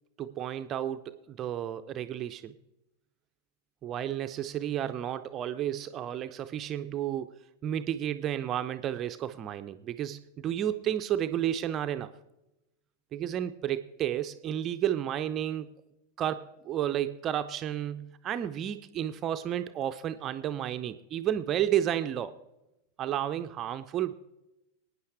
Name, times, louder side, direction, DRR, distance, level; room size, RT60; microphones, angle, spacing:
voice 1, 0.2-2.5 3.8-7.3 7.6-12.1 13.1-15.7 16.2-22.3 23.0-24.1, right 11 dB, 30° right, 10 dB, 0.5 m, -32 dB
24.5 x 9.4 x 3.3 m, 0.93 s
figure-of-eight pair, 90°, 0 cm